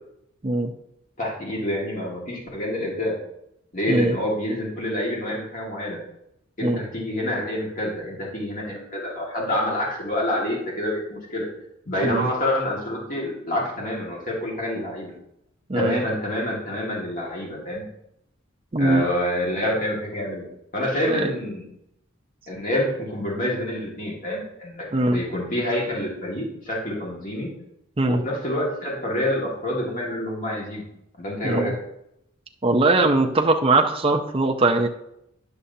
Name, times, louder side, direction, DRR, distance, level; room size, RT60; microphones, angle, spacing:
voice 1, 1.2-3.2 3.7-6.0 6.6-11.5 11.9-15.1 15.7-17.8 18.8-20.5 20.7-21.7 22.5-27.5 28.1-30.8 31.2-31.7, left 1 dB, 40° left, -3 dB, 1.8 m, -27 dB
voice 2, 15.7-16.0 18.7-19.1 21.1-21.3 24.9-25.2 28.0-28.2 31.4-31.7 32.6-34.9, right 2 dB, 25° right, 2 dB, 0.5 m, -21 dB
9.8 x 6.7 x 2.7 m, 0.80 s
head